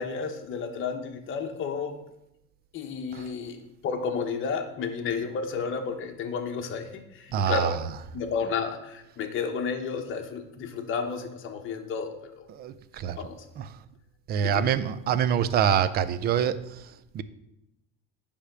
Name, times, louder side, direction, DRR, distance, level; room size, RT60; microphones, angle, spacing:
voice 1, 0.0-1.9 2.7-3.6 3.8-7.8 8.1-12.5 13.2-13.4 14.4-14.7, left 5 dB, 40° left, 1.1 m, -32 dB
voice 2, 7.3-7.7 12.5-13.2 13.6-13.7 14.3-16.6 17.1-17.2, right 8 dB, 30° right, 0.4 m, -25 dB
9.7 x 3.5 x 6.6 m
cardioid pair, 140°, 31 cm